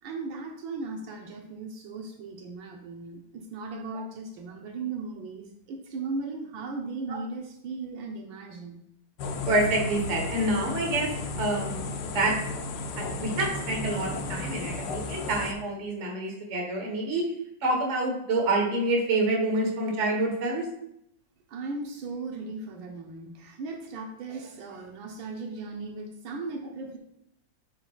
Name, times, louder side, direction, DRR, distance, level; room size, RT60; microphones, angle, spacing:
voice 1, 0.0-8.8 21.5-27.0, right 3 dB, 80° right, 2 dB, 1.6 m, -37 dB
sound 1, 9.2-15.5, left 3 dB, 75° left, 1.3 m, -34 dB
voice 2, 9.5-11.1 11.4-12.4 12.9-17.3 17.6-20.6, right 2 dB, 40° right, 0 dB, 1.5 m, -27 dB
8.1 x 5.8 x 2.4 m, 0.76 s
omnidirectional pair, 2.1 m